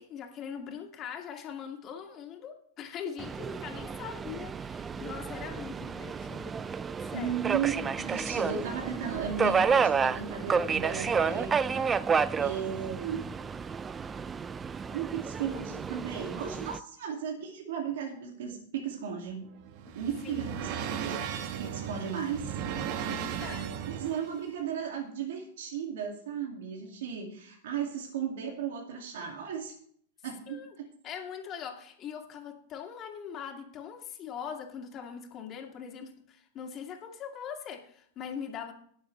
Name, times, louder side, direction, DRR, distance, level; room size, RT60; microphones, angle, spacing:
voice 1, 0.0-6.6 7.0-7.3 19.9-20.0 20.2-20.5 23.0-23.9 30.5-30.7 31.0-38.7, left 7 dB, 30° left, 2 dB, 2.4 m, -41 dB
Subway metro underground, 3.2-16.8, right 6 dB, 15° right, 0.4 m, -31 dB
voice 2, 7.1-12.0 12.3-13.3 14.9-19.5 19.9-21.2 21.6-22.6 23.9-29.7 30.2-30.9, right 7 dB, 80° right, 0 dB, 2.3 m, -35 dB
sound 1, 19.3-24.4, right 8 dB, 50° right, 1.2 m, -36 dB
20.5 x 7.0 x 3.3 m, 0.63 s
supercardioid pair, 140°, 0 cm